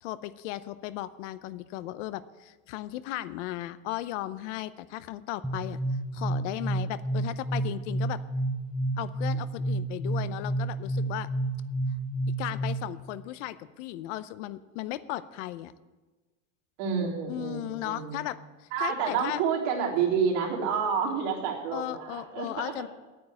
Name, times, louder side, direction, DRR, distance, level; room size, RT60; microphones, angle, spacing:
voice 1, 0.0-5.8 6.1-8.2 9.0-11.3 12.4-15.7 17.3-19.4 21.7-22.9, left 15 dB, 60° left, 15 dB, 0.8 m, -36 dB
sound 1, 5.4-13.0, right 2 dB, ahead, 0.5 m, -30 dB
voice 2, 16.8-18.2 18.7-22.7, right 6 dB, 70° right, -2 dB, 3.7 m, -29 dB
11.0 x 9.4 x 8.5 m, 1.2 s
supercardioid pair, 165°, 40 cm